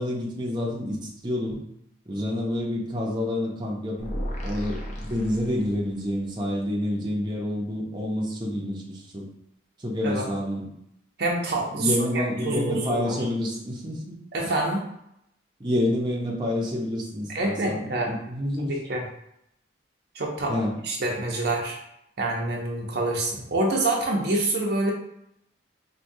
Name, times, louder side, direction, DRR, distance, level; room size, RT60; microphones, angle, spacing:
voice 1, 0.0-1.6 2.1-4.1 4.4-9.3 9.8-10.7 11.8-14.2 15.6-18.8 20.5-20.7, left 1 dB, 25° right, -3 dB, 0.6 m, -28 dB
sound 1, 4.0-6.1, equal, 40° left, 0.7 m, -34 dB
voice 2, 11.2-13.1 14.3-14.8 17.3-18.1 18.7-19.0 20.1-20.5 20.8-21.8 22.2-24.9, right 2 dB, 60° right, 0 dB, 0.6 m, -26 dB
4.5 x 2.2 x 2.6 m, 0.77 s
head